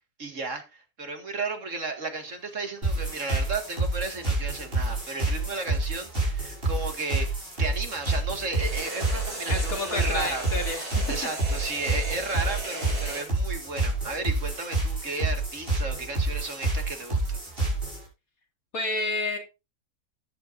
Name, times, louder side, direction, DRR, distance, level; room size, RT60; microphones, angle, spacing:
voice 1, 0.2-7.3 7.6-10.5 11.1-17.4, right 3 dB, 55° right, 6 dB, 2.3 m, -34 dB
sound 1, 2.2-7.4 8.5-13.3, right 2 dB, 90° right, 4.6 m, -38 dB
sound 2, 2.8-18.1, right 2 dB, 40° right, 6.2 m, -28 dB
voice 2, 9.5-11.1 18.7-19.4, left 2 dB, 70° left, 2 dB, 3.4 m, -30 dB
14.0 x 9.9 x 2.6 m, 0.27 s
omnidirectional pair, 1.6 m